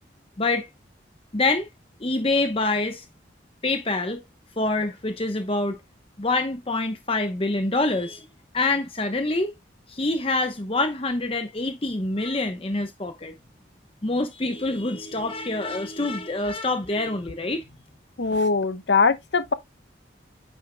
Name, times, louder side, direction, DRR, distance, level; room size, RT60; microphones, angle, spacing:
voice 1, 1.3-1.7 2.0-3.0 3.6-4.2 4.6-5.8 6.2-8.3 8.5-9.5 9.9-13.3 14.0-17.7, left 2 dB, 30° left, 0.9 m, -26 dB
voice 2, 18.2-19.5, left 4 dB, 70° left, 0.9 m, -21 dB
9.5 x 6.3 x 2.2 m
head